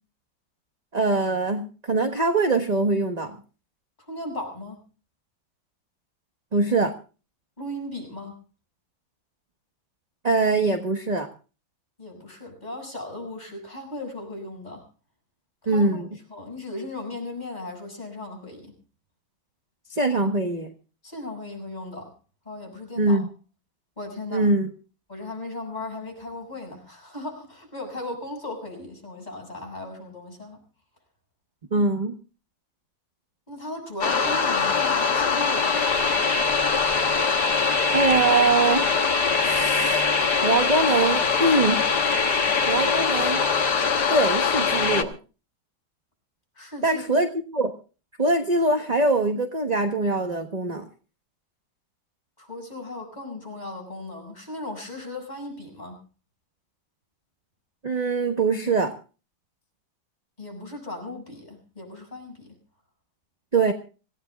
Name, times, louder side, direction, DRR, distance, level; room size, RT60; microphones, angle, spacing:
voice 1, 0.9-3.4 6.5-6.9 10.2-11.3 15.7-16.1 19.9-20.7 23.0-23.3 24.3-24.7 31.7-32.1 37.9-38.8 39.4-40.0 40.4-41.9 42.7-43.4 44.1-45.2 46.8-47.7 48.2-50.8 57.8-58.9 63.5-63.7, right 3 dB, 25° right, 6 dB, 1.0 m, -23 dB
voice 2, 4.1-4.8 7.6-8.3 12.0-14.8 15.6-16.0 16.3-18.7 21.0-22.1 22.5-23.2 24.0-24.5 25.1-30.6 33.5-36.1 46.6-47.0 52.4-56.0 60.4-62.5, left 2 dB, 20° left, 2 dB, 7.3 m, -37 dB
sound 1, 34.0-45.0, left 5 dB, 55° left, 1.8 m, -22 dB
26.0 x 16.5 x 2.4 m, 0.35 s
omnidirectional pair, 2.2 m